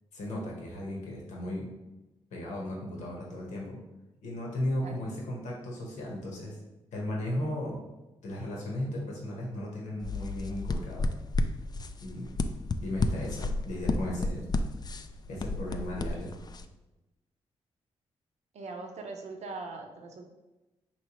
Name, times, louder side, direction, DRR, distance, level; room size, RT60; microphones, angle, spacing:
voice 1, 0.1-1.7 2.3-3.8 4.2-6.6 6.9-7.8 8.2-11.1 12.0-12.4 12.8-14.5 15.3-16.3, left 1 dB, 85° left, -2 dB, 1.0 m, -35 dB
sound 1, 10.0-16.6, left 2 dB, 35° left, 0.3 m, -32 dB
voice 2, 18.5-20.2, right 3 dB, 70° right, 3 dB, 0.7 m, -41 dB
4.5 x 3.1 x 2.9 m, 1.0 s
supercardioid pair, 50°, 12 cm